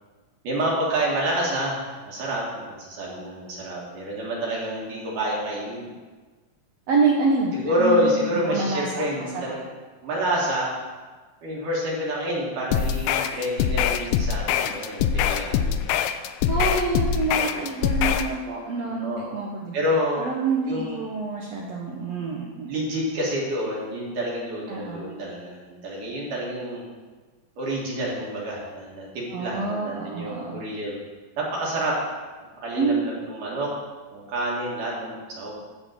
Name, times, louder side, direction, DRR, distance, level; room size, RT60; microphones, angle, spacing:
voice 1, 0.4-1.8 2.1-5.9 7.5-9.7 10.0-10.7 11.4-15.9 17.1-17.6 17.9-18.0 18.8-19.3 19.7-20.3 20.6-21.0 22.6-26.8 27.6-31.0 31.4-32.0 32.6-33.7 34.1-35.5, equal, 60° right, -5 dB, 3.3 m, -28 dB
voice 2, 6.9-9.1 16.5-19.7 20.2-22.7 24.7-25.0 29.3-30.6 32.7-33.0, right 4 dB, 80° right, -2 dB, 1.5 m, -27 dB
sound 1, 12.7-18.3, left 9 dB, 85° left, 2.4 m, -23 dB
11.0 x 4.3 x 7.7 m, 1.3 s
omnidirectional pair, 4.4 m